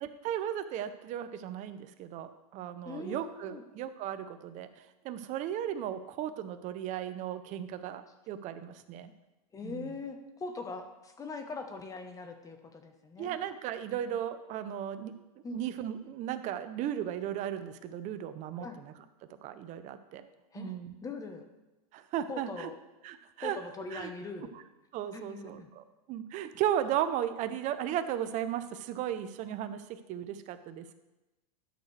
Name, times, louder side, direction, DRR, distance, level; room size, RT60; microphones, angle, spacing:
voice 1, 0.0-4.7 5.0-9.1 9.6-10.0 13.2-15.1 15.5-18.9 19.4-20.3 20.6-20.9 21.9-22.7 23.0-23.6 23.9-24.1 24.9-30.9, right 10 dB, 40° right, 11 dB, 0.6 m, -36 dB
voice 2, 2.8-3.6 9.5-13.4 15.4-15.6 18.6-18.8 20.5-20.7 21.0-21.4 22.3-22.7 23.4-24.6 25.1-25.7, left 3 dB, 15° left, 6 dB, 1.0 m, -41 dB
11.0 x 6.5 x 3.3 m, 1.0 s
supercardioid pair, 125°, 20 cm